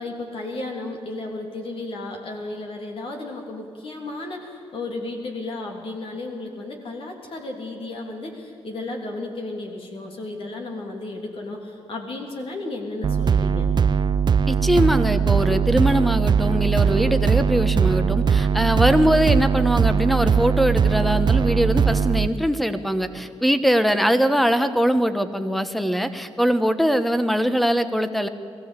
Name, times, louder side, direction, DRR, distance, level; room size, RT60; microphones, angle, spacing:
voice 1, 0.0-13.7, left 2 dB, 55° left, 1 dB, 3.3 m, -33 dB
sound 1, 13.0-22.3, right 6 dB, 45° right, 0.6 m, -20 dB
voice 2, 14.5-28.3, equal, ahead, 10 dB, 1.3 m, -21 dB
21.5 x 15.5 x 8.4 m, 2.6 s
cardioid pair, 90°, 11 cm